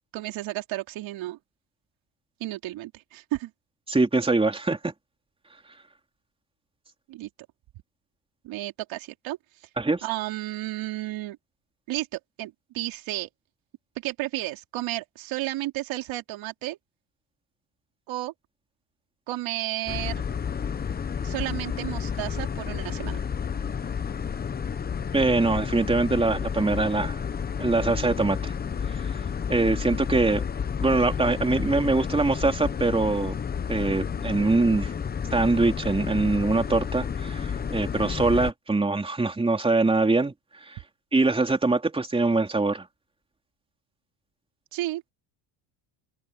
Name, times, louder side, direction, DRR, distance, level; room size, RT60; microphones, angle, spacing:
voice 1, 0.1-1.4 2.4-3.5 7.1-7.3 8.4-9.4 10.0-11.4 11.9-13.3 14.0-16.8 18.1-18.3 19.3-20.2 21.2-23.2 44.7-45.1, right 17 dB, 65° right, 3.4 m, -32 dB
voice 2, 3.9-4.9 9.8-10.0 25.1-27.2 27.6-28.5 29.5-30.4 30.8-33.3 33.7-34.9 35.3-40.3 40.7-40.8 41.1-42.9, right 3 dB, 10° right, 3.5 m, -23 dB
sound 1, 19.9-38.5, left 7 dB, 20° left, 0.8 m, -31 dB
open air
cardioid pair, 135°, 50 cm